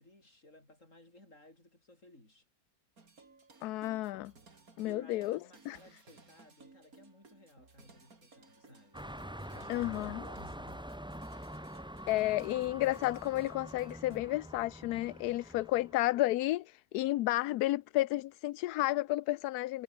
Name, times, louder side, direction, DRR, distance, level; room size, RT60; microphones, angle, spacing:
voice 1, 0.0-2.5 4.8-10.8, left 1 dB, 50° left, 7.9 m, -57 dB
sound 1, 3.0-14.2, right 4 dB, 60° right, 3.6 m, -60 dB
voice 2, 3.6-4.3 4.8-5.4 5.7-5.8 9.7-10.2 12.1-19.8, left 16 dB, 75° left, 1.1 m, -32 dB
sound 2, 8.9-16.2, equal, 5° right, 1.2 m, -46 dB
omnidirectional pair, 1.7 m